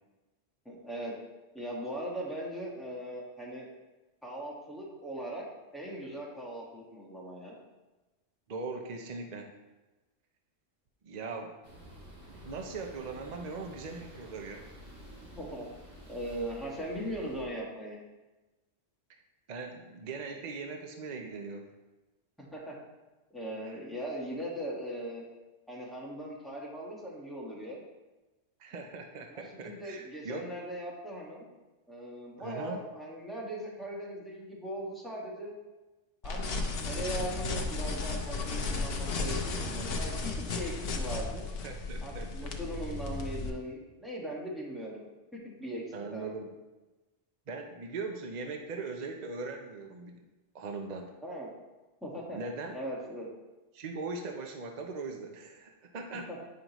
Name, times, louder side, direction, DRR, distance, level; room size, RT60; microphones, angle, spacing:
voice 1, 0.6-1.1 1.5-3.7 4.2-5.4 5.7-7.6 15.4-15.6 16.1-18.0 22.4-22.7 23.3-25.3 25.7-27.8 29.3-31.5 31.9-35.5 36.2-36.4 36.8-41.5 42.0-45.0 45.3-45.8 46.1-46.3 51.2-51.5 52.0-52.4 52.7-53.3 56.3-56.4, right 1 dB, ahead, -5 dB, 1.5 m, -39 dB
voice 2, 8.5-9.5 11.0-11.5 12.3-14.7 19.5-21.7 23.7-23.8 28.6-30.5 32.4-32.8 41.6-42.3 45.9-46.5 47.5-50.2 50.5-51.1 52.3-52.8 53.7-56.4, right 3 dB, 45° right, 3 dB, 0.6 m, -40 dB
sound 1, 11.6-17.4, equal, 70° right, 2.6 m, -50 dB
sound 2, 36.2-43.5, left 3 dB, 55° left, 0.9 m, -34 dB
9.5 x 5.1 x 3.0 m, 1.1 s
omnidirectional pair, 1.3 m